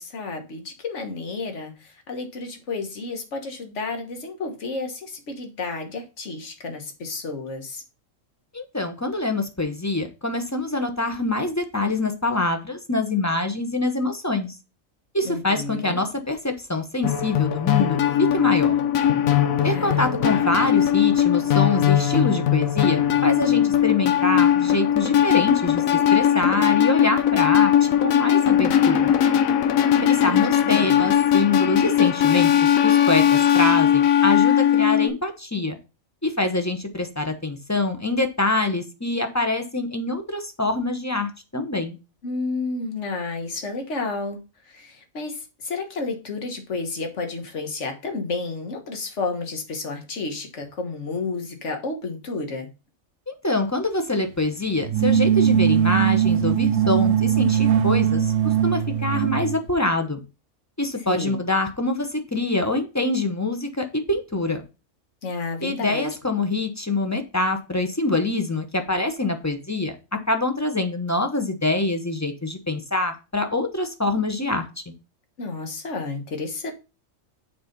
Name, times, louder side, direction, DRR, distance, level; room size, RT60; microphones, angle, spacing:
voice 1, 0.0-7.8 15.2-16.0 19.6-20.5 29.9-30.4 30.6-31.0 42.2-52.7 61.1-61.4 65.2-66.1 75.4-76.7, left 3 dB, 60° left, 1.6 m, -31 dB
voice 2, 8.5-14.5 15.1-18.7 19.6-25.8 26.1-29.1 30.1-35.8 36.2-42.0 53.3-60.2 60.8-64.6 65.6-69.9 70.3-74.9, left 2 dB, 15° left, 0.7 m, -25 dB
sound 1, 17.0-35.1, left 10 dB, 85° left, 1.1 m, -19 dB
sound 2, 54.8-59.6, right 9 dB, 70° right, 0.9 m, -20 dB
7.1 x 4.2 x 5.2 m
omnidirectional pair, 1.4 m